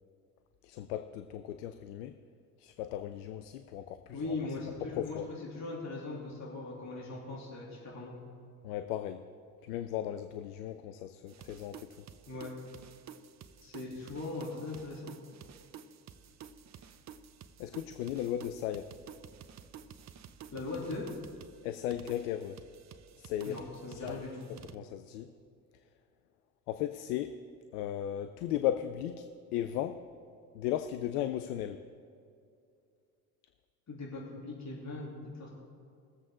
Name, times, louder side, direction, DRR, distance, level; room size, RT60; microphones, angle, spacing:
voice 1, 0.6-2.1 2.6-4.4 4.9-5.3 8.6-9.2 9.6-11.9 17.6-18.9 21.6-22.6 23.2-23.6 23.9-24.2 24.7-25.3 26.7-27.4 27.7-30.0 30.5-31.8, left 11 dB, 80° left, 10 dB, 0.6 m, -36 dB
voice 2, 4.1-5.2 5.5-8.2 12.3-12.5 13.6-15.2 20.5-21.1 23.5-24.5 33.9-35.5, left 3 dB, 35° left, -4 dB, 3.1 m, -40 dB
sound 1, 11.3-24.8, right 7 dB, 35° right, 0.8 m, -52 dB
20.5 x 7.6 x 3.7 m, 2.5 s
hypercardioid pair, 65°, 45 cm